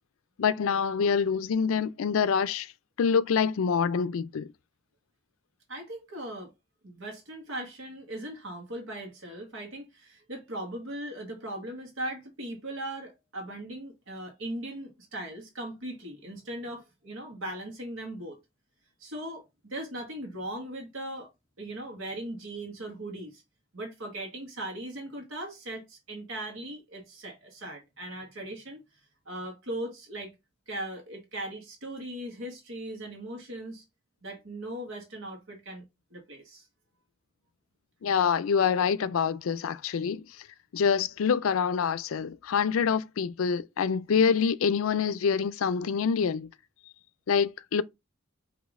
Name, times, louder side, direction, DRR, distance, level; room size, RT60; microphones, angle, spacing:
voice 1, 0.4-2.7 3.0-4.5 38.0-40.3 40.7-46.5 47.3-47.8, left 6 dB, 85° left, 0.4 m, -26 dB
voice 2, 5.7-6.5 6.8-18.4 19.0-21.3 21.6-23.4 23.7-28.8 29.3-30.3 30.7-33.8 34.2-35.8 36.1-36.6, right 1 dB, 75° right, 1.4 m, -39 dB
5.1 x 2.9 x 3.6 m
head